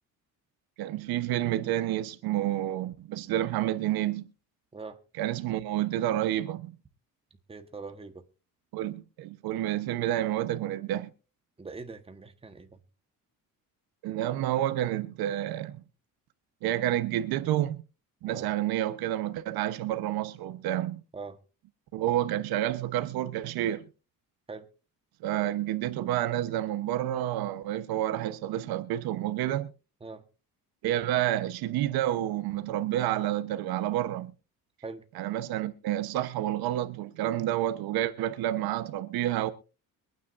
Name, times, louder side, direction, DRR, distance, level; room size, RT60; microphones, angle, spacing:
voice 1, 0.8-4.2 5.2-6.7 8.7-11.1 14.0-15.8 16.6-17.8 18.2-21.0 21.9-23.9 25.2-29.7 30.8-34.3 35.1-39.5, right 13 dB, 85° right, 1.1 m, -29 dB
voice 2, 7.5-8.2 11.6-12.8 18.3-18.5 21.1-21.4 24.5-24.7 30.0-30.2 34.8-35.0, right 4 dB, 15° right, 1.4 m, -42 dB
24.0 x 9.3 x 2.6 m
cardioid pair, 120°, 36 cm